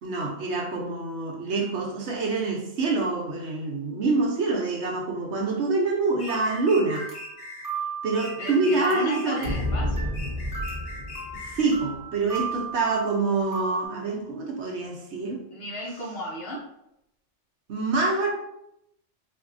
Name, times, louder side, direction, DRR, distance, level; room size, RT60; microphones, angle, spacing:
voice 1, 0.0-7.1 8.0-9.4 11.4-15.4 17.7-18.3, right 3 dB, 65° right, 0 dB, 1.0 m, -26 dB
sound 1, 6.2-7.7 8.2-9.7 10.1-11.8, left 2 dB, 90° left, 1.3 m, -41 dB
sound 2, 6.3-13.9, right 6 dB, 20° right, 0.7 m, -37 dB
voice 2, 8.4-10.1 15.5-16.6, equal, 55° left, -2 dB, 1.0 m, -34 dB
sound 3, 9.4-12.0, left 1 dB, 40° right, 1.0 m, -30 dB
4.0 x 2.6 x 2.6 m, 0.81 s
omnidirectional pair, 1.3 m